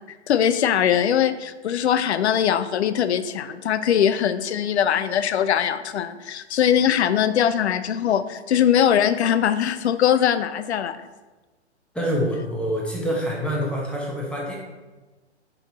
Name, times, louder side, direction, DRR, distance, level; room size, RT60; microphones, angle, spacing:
voice 1, 0.3-11.0, left 9 dB, 70° left, 13 dB, 0.5 m, -21 dB
voice 2, 11.9-14.6, equal, 5° left, -3 dB, 1.0 m, -26 dB
5.3 x 4.5 x 4.0 m, 1.2 s
hypercardioid pair, 125°, 34 cm